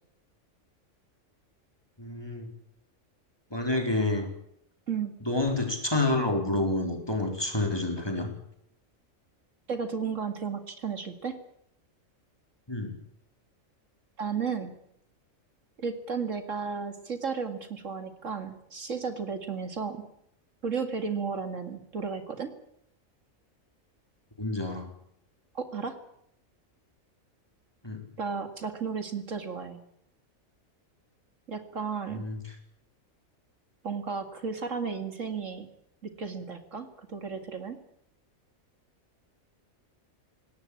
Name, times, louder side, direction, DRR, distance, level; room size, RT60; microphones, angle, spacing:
voice 1, 2.0-2.5 3.5-4.3 5.2-8.3 12.7-12.9 24.4-24.9 27.8-28.0 32.1-32.4, left 2 dB, 15° left, 3 dB, 4.2 m, -28 dB
voice 2, 9.7-11.4 14.2-14.7 15.8-20.0 20.6-22.5 25.5-26.0 28.2-29.8 31.5-32.2 33.8-35.7 36.0-37.8, right 5 dB, 65° right, 8 dB, 2.4 m, -33 dB
20.5 x 18.0 x 8.7 m, 0.73 s
omnidirectional pair, 1.4 m